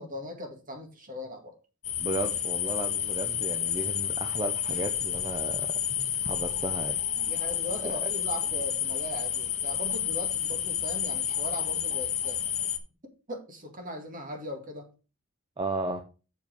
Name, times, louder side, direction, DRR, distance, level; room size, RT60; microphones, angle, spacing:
voice 1, 0.0-1.6 7.3-12.4 13.3-14.9, equal, 40° right, 2.0 m, -39 dB
sound 1, 1.8-12.8, left 9 dB, 35° left, 0.9 m, -30 dB
voice 2, 2.0-5.8 6.2-7.0 7.8-8.1 15.6-16.0, right 2 dB, 25° right, 0.7 m, -34 dB
7.2 x 4.7 x 6.2 m
head